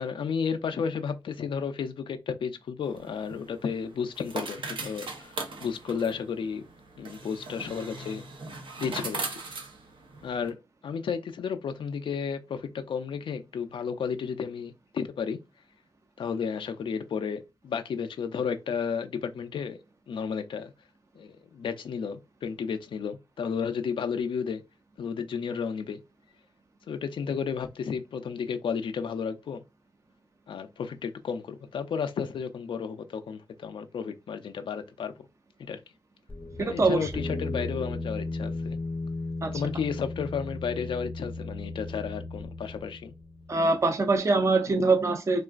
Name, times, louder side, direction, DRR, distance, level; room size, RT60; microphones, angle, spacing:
voice 1, 0.0-5.3 5.6-6.6 7.0-8.2 8.8-9.3 10.2-10.6 10.8-15.4 16.2-19.8 20.1-20.7 21.2-24.6 25.0-26.0 26.9-29.6 30.5-35.1 35.6-35.8 36.6-38.8 39.5-43.1, left 6 dB, 80° left, 0.3 m, -32 dB
sound 1, 2.8-10.5, right 3 dB, 85° right, 0.7 m, -39 dB
sound 2, 36.3-43.7, left 2 dB, 20° left, 0.5 m, -36 dB
voice 2, 36.6-37.1 39.4-39.6 43.5-45.4, right 3 dB, 35° right, 0.5 m, -24 dB
3.7 x 2.4 x 2.3 m
wide cardioid pair, 80°, 9 cm